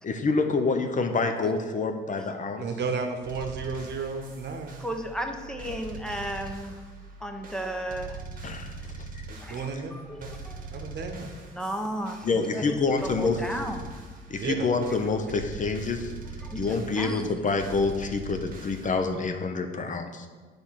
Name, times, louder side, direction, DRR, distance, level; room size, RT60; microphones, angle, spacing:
voice 1, 0.0-2.6 8.4-9.2 12.2-13.4 14.3-16.1 16.5-20.3, left 4 dB, 40° left, 6 dB, 0.7 m, -27 dB
voice 2, 2.6-4.8 9.3-9.9 10.2-10.3 10.7-11.3 14.4-14.7, right 5 dB, 60° right, 5 dB, 1.0 m, -33 dB
sound 1, 3.2-19.0, right 3 dB, 45° right, 1.3 m, -42 dB
voice 3, 4.8-6.8 7.2-8.2 9.4-9.6 9.9-10.7 11.5-14.0 16.4-16.7 17.0-17.3, right 1 dB, 5° left, 5 dB, 0.8 m, -34 dB
8.4 x 3.5 x 5.7 m, 1.4 s
cardioid pair, 90°, 20 cm